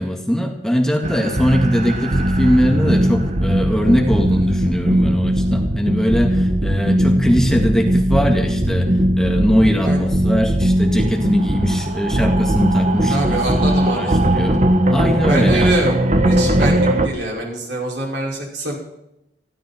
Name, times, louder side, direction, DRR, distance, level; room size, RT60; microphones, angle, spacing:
voice 1, 0.0-8.9 9.2-14.6 14.9-15.9, equal, 5° left, 2 dB, 2.0 m, -20 dB
sound 1, 1.0-17.1, right 1 dB, 40° right, 1.4 m, -18 dB
voice 2, 13.1-14.1 15.3-16.0 16.2-18.8, right 1 dB, 65° right, -1 dB, 5.9 m, -24 dB
20.0 x 15.5 x 4.5 m, 0.82 s
head